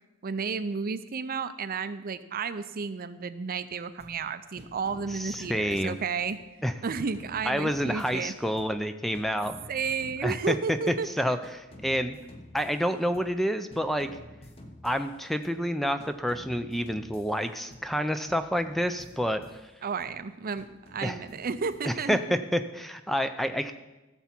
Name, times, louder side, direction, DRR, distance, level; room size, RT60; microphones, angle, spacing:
voice 1, 0.2-6.4 6.8-8.3 9.7-11.1 19.8-22.2, right 5 dB, 45° right, 12 dB, 0.5 m, -32 dB
sound 1, 4.0-4.3 4.6-6.5 6.8-8.9 9.1-11.1 11.4-13.4 13.7-15.7 16.0-18.0 18.3-20.2 20.6-22.2, left 1 dB, 30° left, 1.0 m, -50 dB
voice 2, 5.2-5.9 6.6-6.7 7.5-9.5 10.2-10.6 10.9-12.2 12.5-14.1 14.8-19.4 21.0-21.2 21.8-23.7, equal, ahead, 9 dB, 0.4 m, -28 dB
16.0 x 7.1 x 4.4 m, 1.1 s
head